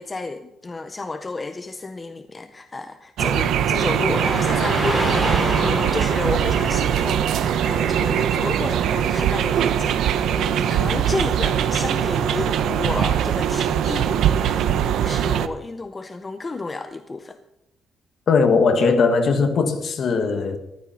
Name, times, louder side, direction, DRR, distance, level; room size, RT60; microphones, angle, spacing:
voice 1, 0.0-17.4, left 3 dB, 20° left, 0.5 m, -31 dB
sound 1, 3.2-15.5, right 9 dB, 80° right, 0.8 m, -21 dB
Car passing by / Traffic noise roadway noise, 4.1-13.2, equal, ahead, 3.1 m, -31 dB
voice 2, 18.3-20.6, left 4 dB, 45° left, 1.5 m, -19 dB
13.5 x 12.0 x 5.8 m
cardioid pair, 175°, 0 cm